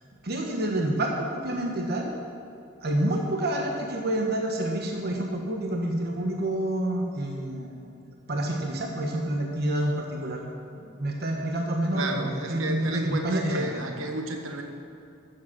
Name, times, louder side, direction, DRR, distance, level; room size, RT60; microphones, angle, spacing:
voice 1, 0.2-2.2 2.8-7.8 8.3-10.4 10.8-13.7, right 1 dB, 50° right, 1 dB, 1.2 m, -28 dB
voice 2, 11.9-14.6, right 2 dB, 85° right, 3 dB, 1.2 m, -32 dB
14.0 x 7.8 x 6.0 m, 2.6 s
head